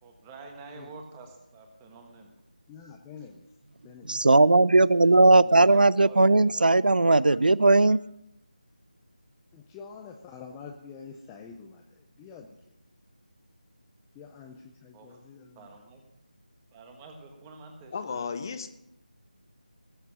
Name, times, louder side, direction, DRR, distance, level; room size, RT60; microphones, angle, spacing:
voice 1, 0.0-2.3 3.2-3.3 5.0-5.1 5.7-6.9 14.9-15.2 15.5-16.0 16.7-18.3, right 3 dB, 10° right, 4 dB, 1.4 m, -48 dB
voice 2, 2.7-3.5 3.8-4.2 5.2-5.5 7.3-7.4 7.9-8.0 9.5-12.5 14.1-15.7, left 6 dB, 10° left, 2 dB, 0.5 m, -47 dB
voice 3, 4.1-8.0, right 2 dB, 75° right, 21 dB, 0.4 m, -18 dB
voice 4, 17.9-18.7, left 5 dB, 25° left, 10 dB, 0.9 m, -33 dB
19.0 x 8.1 x 6.1 m, 0.83 s
figure-of-eight pair, 165°, 5 cm